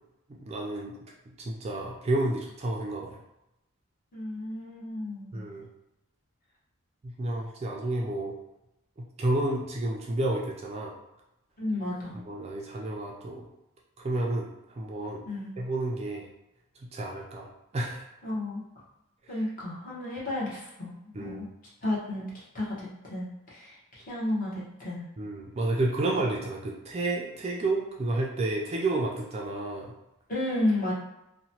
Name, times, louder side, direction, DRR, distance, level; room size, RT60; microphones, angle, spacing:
voice 1, 0.3-0.9 1.4-3.2 5.3-5.7 7.0-8.3 9.2-10.9 12.1-13.4 14.0-15.2 15.6-16.3 16.9-18.0 19.3-19.5 21.1-21.4 25.2-29.9, right 2 dB, 30° right, -2 dB, 0.3 m, -30 dB
voice 2, 4.1-5.5 11.6-12.1 15.3-15.5 18.2-18.6 19.3-21.5 21.8-25.1 30.3-30.9, left 1 dB, 40° left, -7 dB, 1.0 m, -32 dB
2.8 x 2.1 x 2.7 m, 0.91 s
head